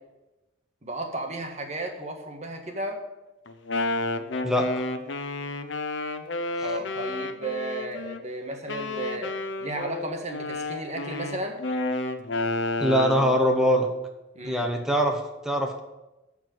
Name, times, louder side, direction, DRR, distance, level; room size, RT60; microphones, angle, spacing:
voice 1, 0.8-3.0 6.6-11.6 14.3-14.7, right 2 dB, 35° right, 3 dB, 1.6 m, -34 dB
Wind instrument woodwind instrument, 3.5-8.2 8.7-13.4, left 2 dB, 70° left, 0.8 m, -31 dB
voice 2, 4.4-4.8 6.6-6.7 12.8-13.9 14.4-15.8, equal, 5° right, 3 dB, 0.9 m, -23 dB
13.5 x 4.7 x 7.8 m, 1.0 s
head